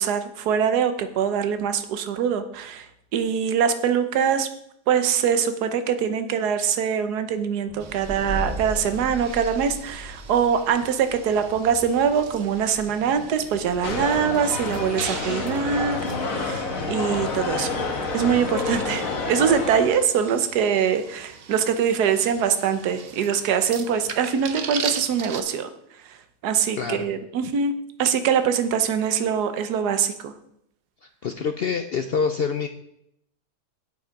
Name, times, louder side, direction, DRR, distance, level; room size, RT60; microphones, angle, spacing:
voice 1, 0.0-2.9 3.1-4.5 4.9-17.7 18.1-25.7 26.4-27.7 28.0-30.3, right 7 dB, 75° right, 10 dB, 1.4 m, -23 dB
sound 1, 7.7-15.1, right 1 dB, 25° right, 1.5 m, -38 dB
sound 2, 7.8-25.4, right 6 dB, 50° right, 0.7 m, -40 dB
sound 3, 13.8-20.0, left 3 dB, 55° left, 1.6 m, -28 dB
voice 2, 26.8-27.1 31.2-32.7, left 5 dB, 85° left, 8 dB, 0.5 m, -26 dB
8.2 x 8.0 x 5.1 m, 0.74 s
omnidirectional pair, 1.7 m